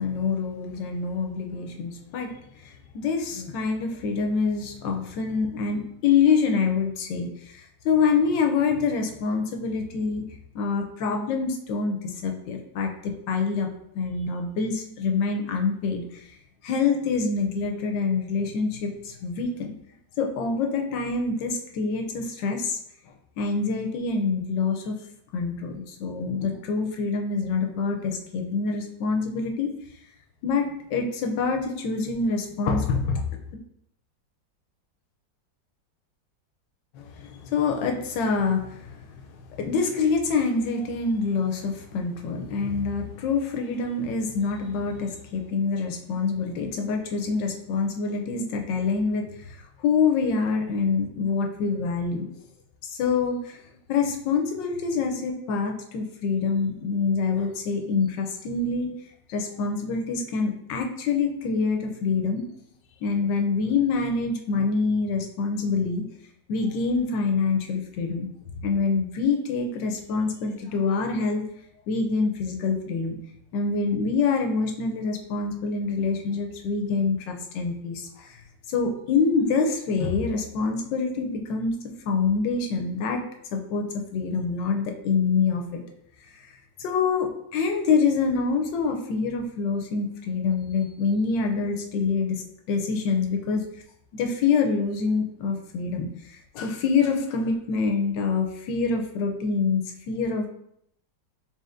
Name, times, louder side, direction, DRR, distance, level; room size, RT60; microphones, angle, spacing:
voice 1, 0.0-2.3 2.6-10.2 10.5-13.7 13.9-16.2 16.6-19.7 20.2-22.8 23.4-25.0 25.3-29.7 30.4-33.3 36.9-39.0 39.6-49.5 49.8-52.3 52.8-53.6 53.9-58.9 59.3-62.4 63.0-66.1 66.5-68.3 68.6-71.4 71.9-73.2 73.5-78.3 78.7-81.7 82.0-83.2 83.5-85.8 86.8-92.4 92.7-93.6 94.1-99.8 100.1-100.5, left 4 dB, 90° left, 3 dB, 1.3 m, -26 dB
4.1 x 3.7 x 2.5 m, 0.73 s
omnidirectional pair, 1.9 m